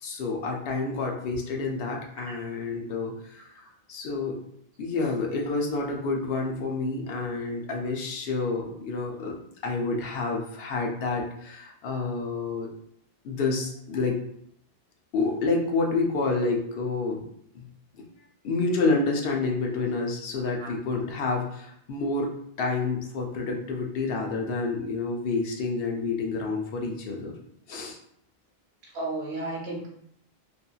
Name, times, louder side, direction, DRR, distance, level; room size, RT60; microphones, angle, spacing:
voice 1, 0.0-3.4 3.9-4.4 4.8-12.7 13.2-14.2 15.1-17.3 17.5-17.6 18.0-18.1 18.4-27.3 27.7-28.0, left 3 dB, 70° left, 0 dB, 0.8 m, -29 dB
voice 2, 28.8-29.9, right 2 dB, 85° right, -2 dB, 1.0 m, -34 dB
2.7 x 2.5 x 2.3 m, 0.70 s
omnidirectional pair, 1.0 m